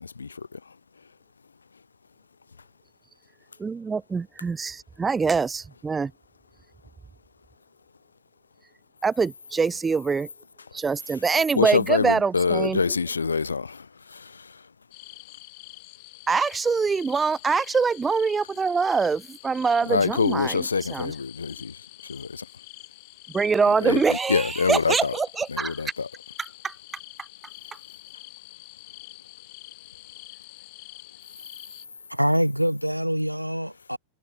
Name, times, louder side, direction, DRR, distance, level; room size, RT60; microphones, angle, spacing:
voice 1, 3.6-6.1 9.0-10.3 10.7-13.0 16.3-21.2 23.3-25.8 26.4-26.7, right 5 dB, 15° right, 0.6 m, -24 dB
voice 2, 11.6-12.0 12.3-13.7 19.9-21.7 22.1-22.3 23.9-24.0 24.3-24.9 25.6-25.9, left 5 dB, 75° left, 0.4 m, -24 dB
sound 1, 14.9-31.8, left 40 dB or more, 45° left, 5.9 m, -46 dB
voice 3, 32.1-34.0, equal, 90° right, 0.7 m, -24 dB
figure-of-eight pair, 90°, 0 cm